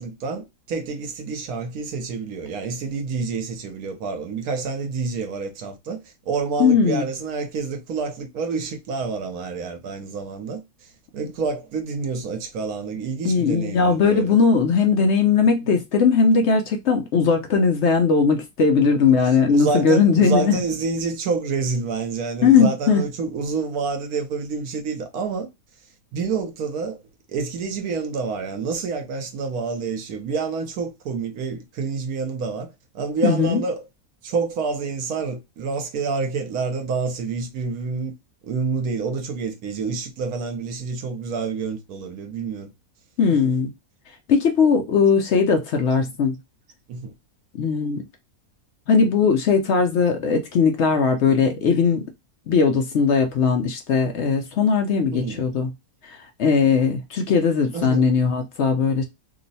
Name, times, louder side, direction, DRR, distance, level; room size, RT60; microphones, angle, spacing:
voice 1, 0.0-10.6 11.1-14.3 19.0-19.1 19.5-25.5 26.1-27.0 27.3-33.9 34.2-38.1 38.4-42.7 46.9-47.1 55.1-55.5 57.7-58.1, right 4 dB, 80° right, 1.2 m, -28 dB
voice 2, 6.6-7.1 13.2-20.6 22.4-23.0 33.2-33.6 43.2-43.7 44.3-46.4 47.6-48.0 48.9-52.0 52.5-55.7 56.0-59.0, left 5 dB, 65° left, 0.8 m, -19 dB
2.9 x 2.1 x 4.0 m
omnidirectional pair, 1.5 m